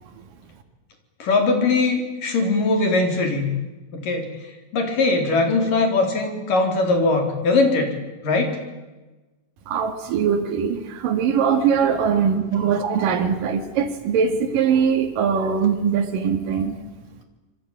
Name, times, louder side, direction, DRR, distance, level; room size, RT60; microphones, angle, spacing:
voice 1, 1.2-3.5 3.9-4.3 4.7-7.9 8.2-8.6, left 3 dB, 65° left, 4 dB, 5.5 m, -20 dB
voice 2, 9.7-16.7, right 7 dB, 65° right, 3 dB, 3.7 m, -21 dB
26.5 x 23.5 x 9.0 m, 1.2 s
omnidirectional pair, 4.2 m